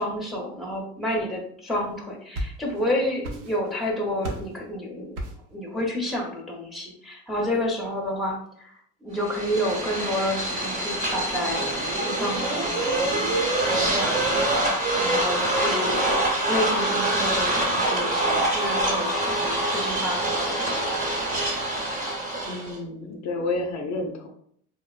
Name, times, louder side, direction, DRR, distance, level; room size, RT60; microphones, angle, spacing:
voice 1, 0.0-5.2 5.5-8.7 9.0-11.6 12.0-13.1 13.6-14.2 14.9-16.1 16.5-21.1, left 1 dB, ahead, -1 dB, 0.6 m, -30 dB
sound 1, 1.9-2.9 3.2-3.8 4.2-4.6 5.2-5.5, right 1 dB, 85° right, 0.7 m, -34 dB
sound 2, 9.2-22.8, right 1 dB, 20° right, 0.9 m, -25 dB
voice 2, 22.5-24.3, left 2 dB, 50° left, 3 dB, 0.5 m, -30 dB
3.2 x 2.1 x 2.3 m, 0.64 s
supercardioid pair, 105°, 38 cm